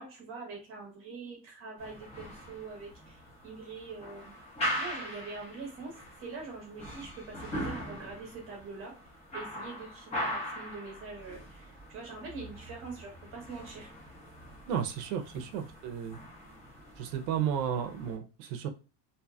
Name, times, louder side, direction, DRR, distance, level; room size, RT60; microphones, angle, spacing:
voice 1, 0.0-4.4 4.7-8.9 9.3-13.9, right 4 dB, 25° right, 0.9 m, -44 dB
sound 1, 1.8-18.2, equal, 15° left, 0.8 m, -41 dB
voice 2, 14.7-16.2 17.0-18.7, right 8 dB, 80° right, 0.7 m, -33 dB
2.7 x 2.6 x 2.3 m
cardioid pair, 175°, 50 cm